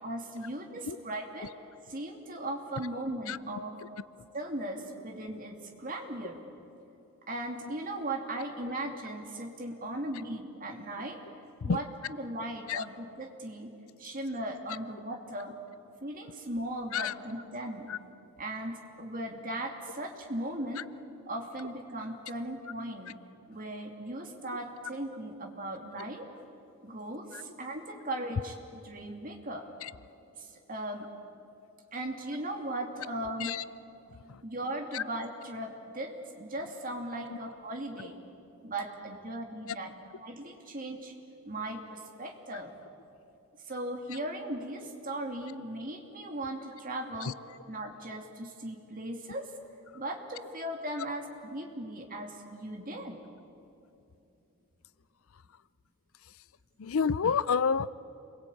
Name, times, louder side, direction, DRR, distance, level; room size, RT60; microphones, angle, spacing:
voice 1, 0.0-1.5 1.9-3.7 4.3-6.4 7.3-11.2 11.6-11.8 12.2-13.7 14.0-15.5 16.0-17.9 18.4-20.8 21.3-23.1 23.5-26.3 26.8-29.6 30.4-31.1 31.9-33.6 34.4-38.2 38.6-39.9 40.2-41.1 41.4-42.7 43.7-47.3 47.7-49.5 49.9-53.2, right 1 dB, 40° right, 3 dB, 2.8 m, -38 dB
voice 2, 56.8-57.9, left 6 dB, 70° left, 18 dB, 0.5 m, -30 dB
28.5 x 22.0 x 8.7 m, 2.8 s
head